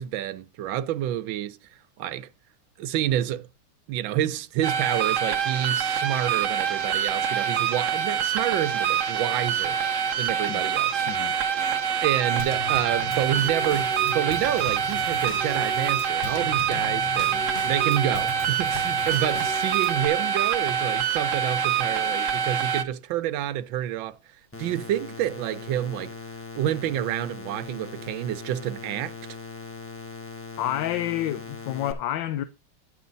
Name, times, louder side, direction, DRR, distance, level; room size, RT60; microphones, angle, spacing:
voice 1, 0.0-1.6 2.0-2.3 2.8-3.5 3.9-9.8 10.2-11.1 12.0-24.2 24.6-26.1 26.5-29.1, right 11 dB, 75° right, 1.5 m, -28 dB
sound 1, 4.6-22.8, right 8 dB, 55° right, 0.9 m, -25 dB
Drum kit / Snare drum / Bass drum, 12.4-20.1, left 4 dB, 30° left, 1.3 m, -38 dB
sound 2, 24.5-31.9, left 4 dB, 10° left, 1.1 m, -40 dB
voice 2, 30.6-32.4, left 12 dB, 75° left, 1.3 m, -29 dB
11.0 x 6.9 x 3.9 m
omnidirectional pair, 2.2 m